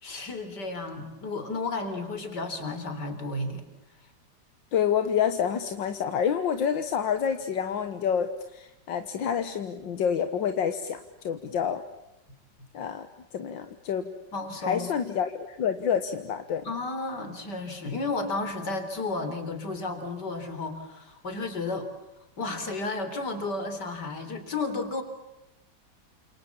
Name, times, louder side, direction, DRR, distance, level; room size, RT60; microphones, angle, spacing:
voice 1, 0.0-3.6 14.3-14.9 16.6-21.9 22.4-25.0, left 3 dB, 65° left, 8 dB, 4.4 m, -32 dB
voice 2, 4.7-11.8 12.7-13.1 13.3-14.1 14.6-16.6, left 8 dB, 85° left, 9 dB, 2.0 m, -28 dB
29.5 x 28.0 x 7.3 m, 0.90 s
omnidirectional pair, 2.0 m